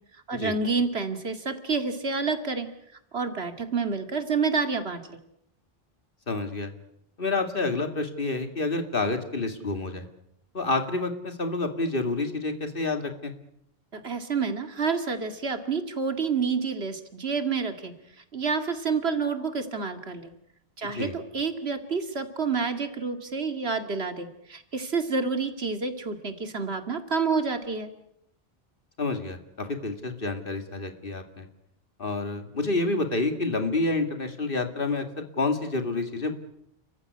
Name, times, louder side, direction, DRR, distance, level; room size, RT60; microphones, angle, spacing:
voice 1, 0.3-2.7 3.1-5.2 13.9-17.9 18.3-20.3 20.8-27.9, right 4 dB, 90° right, 8 dB, 2.5 m, -28 dB
voice 2, 6.3-6.7 7.2-10.1 10.5-13.3 20.9-21.1 29.0-31.5 32.0-36.3, left 3 dB, 60° left, 7 dB, 2.6 m, -28 dB
29.0 x 15.0 x 9.7 m, 0.78 s
omnidirectional pair, 1.0 m